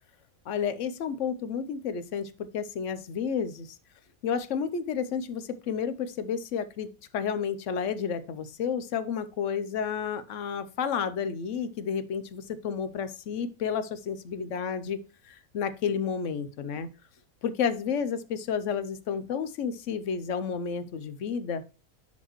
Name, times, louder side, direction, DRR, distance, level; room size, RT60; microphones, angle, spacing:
voice 1, 0.5-3.7 4.2-15.0 15.2-16.9 17.4-21.6, left 7 dB, 65° left, 12 dB, 1.0 m, -31 dB
11.0 x 4.3 x 3.0 m, 0.34 s
omnidirectional pair, 1.5 m